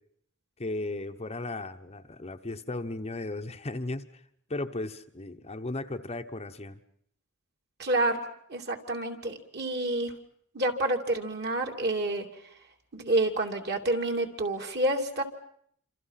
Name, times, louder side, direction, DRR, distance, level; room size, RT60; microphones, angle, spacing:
voice 1, 0.6-4.0 4.5-6.8, left 2 dB, 30° left, 7 dB, 0.9 m, -35 dB
voice 2, 7.8-8.2 8.5-10.1 10.5-12.3 12.9-15.2, right 1 dB, 50° right, 3 dB, 2.9 m, -28 dB
28.0 x 26.5 x 5.8 m, 0.66 s
head